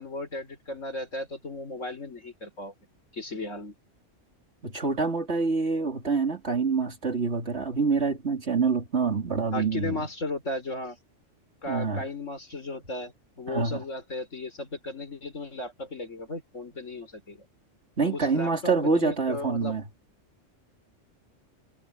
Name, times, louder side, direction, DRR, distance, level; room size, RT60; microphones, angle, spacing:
voice 1, 0.0-2.7 3.1-3.7 9.5-11.0 11.6-17.5 18.0-19.8, left 2 dB, 75° left, 5.3 m, -35 dB
voice 2, 4.6-10.0 11.7-12.0 13.5-13.8 18.0-19.8, right 4 dB, 60° right, 3.2 m, -26 dB
omnidirectional pair, 1.3 m